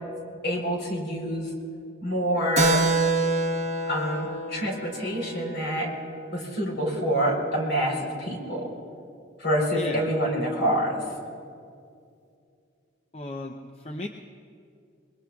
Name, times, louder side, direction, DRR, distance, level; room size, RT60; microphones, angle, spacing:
voice 1, 0.4-1.5 2.0-2.9 3.9-5.9 6.3-8.8 9.4-11.0, equal, 60° left, 0 dB, 3.8 m, -27 dB
Keyboard (musical), 2.6-6.6, right 2 dB, 35° right, 0.8 m, -27 dB
voice 2, 9.7-10.1 13.1-14.1, left 1 dB, 30° left, 3 dB, 0.6 m, -35 dB
25.5 x 22.0 x 2.3 m, 2.4 s
head